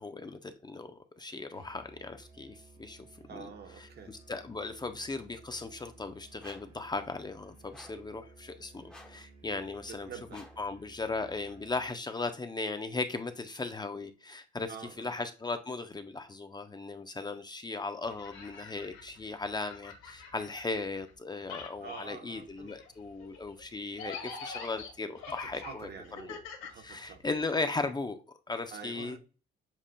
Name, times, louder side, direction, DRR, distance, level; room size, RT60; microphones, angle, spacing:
voice 1, 0.0-3.0 3.3-3.5 3.8-14.7 15.0-25.9 26.8-28.2 28.5-29.2, left 3 dB, 20° left, 0.5 m, -37 dB
Musical instrument, 1.5-11.9, right 3 dB, 80° right, 1.7 m, -56 dB
voice 2, 3.3-4.2 9.9-10.4 14.7-15.1 21.8-22.8 25.3-27.2 28.7-29.2, right 6 dB, 55° right, 1.0 m, -47 dB
sound 1, 6.4-6.8 7.7-8.1 8.9-9.3 10.3-10.7, left 1 dB, 5° left, 0.9 m, -53 dB
sound 2, 18.0-21.1 21.4-27.4, left 5 dB, 85° left, 1.3 m, -46 dB
7.3 x 2.4 x 2.2 m
cardioid pair, 90°, 20 cm